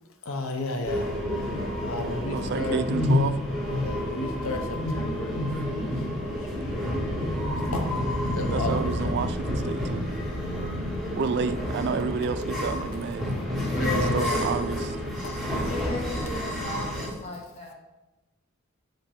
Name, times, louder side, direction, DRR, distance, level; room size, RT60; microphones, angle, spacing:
voice 1, 0.2-1.1 1.8-2.8 3.7-7.3 7.7-8.9 10.3-10.8 13.7-14.5 15.2-15.3, left 2 dB, 65° left, 4 dB, 0.8 m, -33 dB
sound 1, 0.8-17.1, left 1 dB, ahead, 2.0 m, -29 dB
voice 2, 2.3-3.4 8.5-10.0 11.1-13.3 13.9-15.0, right 5 dB, 50° right, 11 dB, 0.3 m, -30 dB
voice 3, 15.6-17.7, left 1 dB, 30° left, -1 dB, 1.4 m, -37 dB
5.9 x 5.4 x 4.3 m, 1.1 s
head